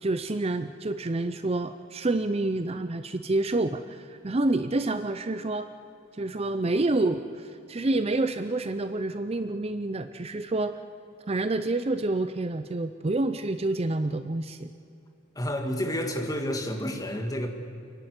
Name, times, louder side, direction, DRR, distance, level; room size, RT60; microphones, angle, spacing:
voice 1, 0.0-5.7 6.2-10.8 11.3-14.7, right 2 dB, 30° right, 10 dB, 0.5 m, -28 dB
voice 2, 15.4-17.5, equal, 15° left, 4 dB, 1.8 m, -30 dB
29.0 x 11.0 x 9.6 m, 2.6 s
head